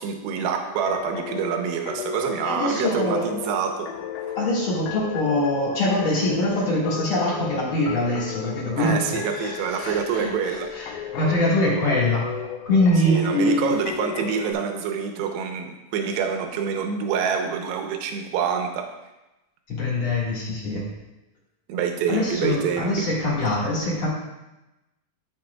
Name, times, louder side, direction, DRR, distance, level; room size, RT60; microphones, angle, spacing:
voice 1, 0.0-3.9 8.8-10.7 13.1-18.9 21.7-22.9, right 7 dB, 75° right, 4 dB, 2.7 m, -26 dB
sound 1, 0.9-14.5, left 8 dB, 85° left, 2.3 m, -35 dB
voice 2, 2.4-3.3 4.3-12.3 12.6-13.8 19.7-20.8 22.1-24.1, left 1 dB, 55° left, -6 dB, 1.5 m, -24 dB
12.5 x 5.8 x 2.3 m, 0.98 s
omnidirectional pair, 5.1 m